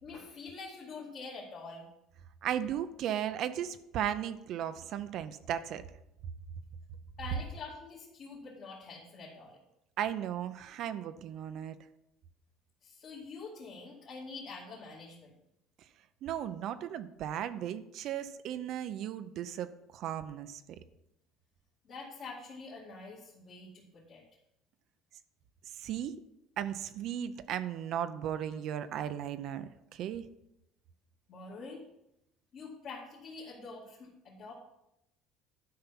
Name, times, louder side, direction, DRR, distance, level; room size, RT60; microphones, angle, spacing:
voice 1, 0.0-1.8 7.2-9.6 12.8-15.3 21.8-24.2 31.3-31.8 32.5-34.5, left 4 dB, 45° left, -5 dB, 2.4 m, -46 dB
voice 2, 2.4-5.8 10.0-11.8 16.2-20.6 25.8-26.2 26.6-30.3, right 10 dB, 55° right, 11 dB, 0.6 m, -36 dB
11.5 x 5.7 x 5.9 m, 0.85 s
cardioid pair, 145°, 0 cm